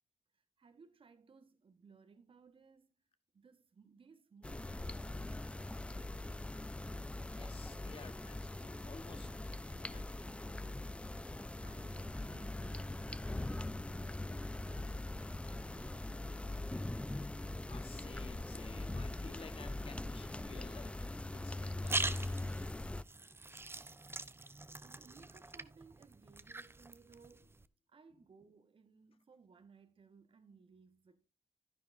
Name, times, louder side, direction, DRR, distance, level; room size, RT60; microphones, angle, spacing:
voice 1, 0.3-3.1 3.3-6.5 11.6-15.2 15.5-16.7 24.8-27.6 27.9-31.3, right 5 dB, 55° right, 1.5 m, -62 dB
sound 1, 4.4-23.0, left 2 dB, 10° left, 0.4 m, -42 dB
voice 2, 7.3-9.3 9.7-10.4 17.7-22.2, left 5 dB, 60° left, 1.2 m, -55 dB
sound 2, 21.5-27.6, right 2 dB, 20° right, 0.7 m, -43 dB
10.5 x 10.5 x 2.6 m
supercardioid pair, 50°, 11 cm